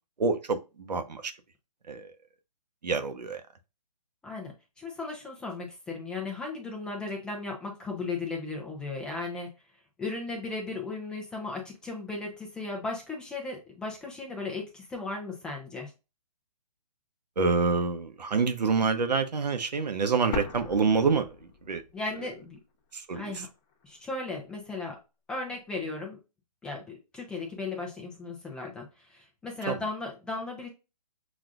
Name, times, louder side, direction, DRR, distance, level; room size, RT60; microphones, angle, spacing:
voice 1, 0.2-1.3 1.9-2.0 2.8-3.4 17.4-21.3 21.7-21.8 22.9-23.3 29.7-29.8, right 4 dB, 90° right, 0.8 m, -27 dB
voice 2, 4.2-9.5 10.0-15.9 21.9-22.6 23.1-23.5 23.8-25.0 25.3-26.2 26.6-30.7, left 3 dB, 5° left, 0.4 m, -36 dB
sound 1, 20.3-22.3 22.6-22.7 23.4-24.3, left 5 dB, 30° left, 1.0 m, -38 dB
6.0 x 2.5 x 2.4 m
hypercardioid pair, 150°, 21 cm